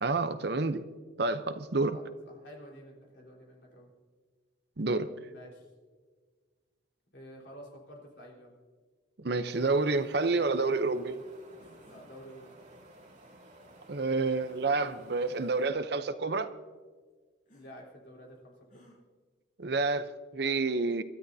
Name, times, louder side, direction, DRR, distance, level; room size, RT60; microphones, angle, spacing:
voice 1, 0.0-0.8 1.2-2.0 4.8-5.1 9.2-11.2 13.9-16.5 19.6-21.0, right 3 dB, 55° right, 0.7 m, -29 dB
voice 2, 1.7-3.9 5.2-5.7 7.1-8.5 11.8-12.6 17.5-18.9, equal, 60° left, 4.1 m, -50 dB
Wind, 9.4-15.7, right 1 dB, 35° right, 2.7 m, -55 dB
sound 1, 11.6-12.1 14.2-14.8 15.5-15.6 17.5-17.7 18.7-19.0, equal, 45° left, 5.3 m, -59 dB
27.0 x 13.0 x 2.7 m
head